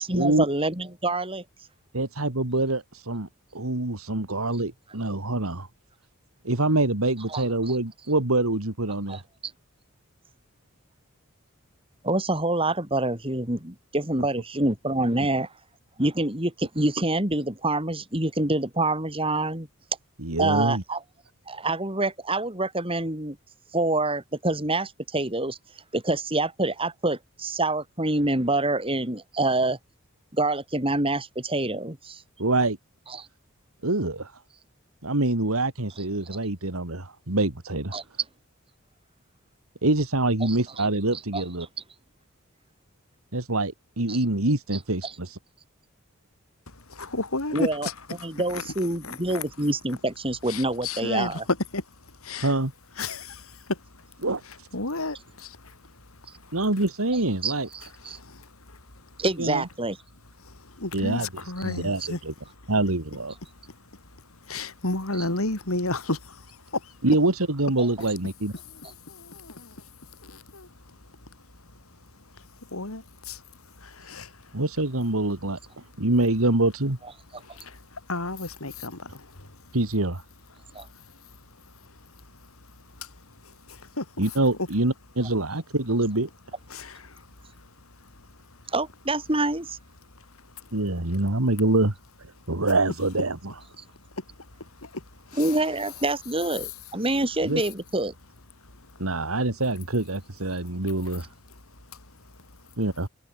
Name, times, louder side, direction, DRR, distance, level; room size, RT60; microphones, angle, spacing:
voice 1, 0.0-1.4 7.3-7.8 9.1-9.2 12.0-15.5 16.0-19.7 20.4-21.0 21.5-23.4 23.7-25.6 25.9-29.8 30.3-32.2 33.1-33.3 37.9-38.0 40.4-40.8 41.3-41.4 44.1-44.2 45.0-45.1 47.5-47.9 48.2-51.4 57.4-58.2 59.2-60.0 67.8-67.9 80.8-80.9 88.7-89.8 95.4-98.1, right 2 dB, 25° right, 5.3 m, -26 dB
voice 2, 1.9-5.7 6.4-9.2 20.2-20.8 32.4-32.8 33.8-34.3 35.0-37.9 39.8-41.7 43.3-45.4 52.4-52.7 54.2-54.7 56.5-57.7 59.4-59.7 60.9-61.3 61.6-62.3 62.7-63.3 67.0-68.5 74.5-75.6 76.0-77.0 79.7-80.2 84.2-86.3 90.7-93.5 97.4-97.6 99.0-101.3 102.8-103.1, right 2 dB, 85° right, 2.5 m, -25 dB
voice 3, 46.7-48.7 49.0-49.4 50.5-52.5 53.0-56.6 58.0-59.2 60.4-62.2 62.6-62.7 63.5-67.0 68.6-74.6 77.4-79.8 80.5-84.3 86.7-88.7 90.1-90.8 93.8-95.6 96.6-96.7 98.6-99.0 100.5-100.8 101.5-102.2, left 2 dB, 85° left, 4.2 m, -35 dB
head